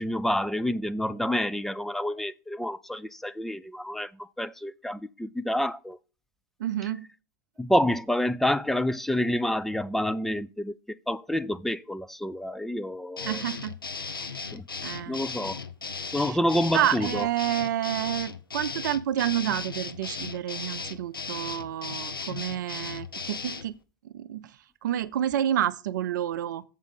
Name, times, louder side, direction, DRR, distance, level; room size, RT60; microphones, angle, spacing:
voice 1, 0.0-6.0 7.6-10.7 11.1-13.4 14.5-14.6 15.1-15.6 16.1-17.3, left 1 dB, ahead, 0.3 m, -28 dB
voice 2, 6.6-7.1 13.2-14.5 14.8-15.2 16.2-16.4 16.7-23.8 24.0-24.6 24.8-26.6, right 11 dB, 55° right, 0.5 m, -29 dB
sound 1, 13.2-23.7, left 5 dB, 80° left, 0.7 m, -36 dB
7.4 x 5.1 x 6.9 m
figure-of-eight pair, 95°, 12 cm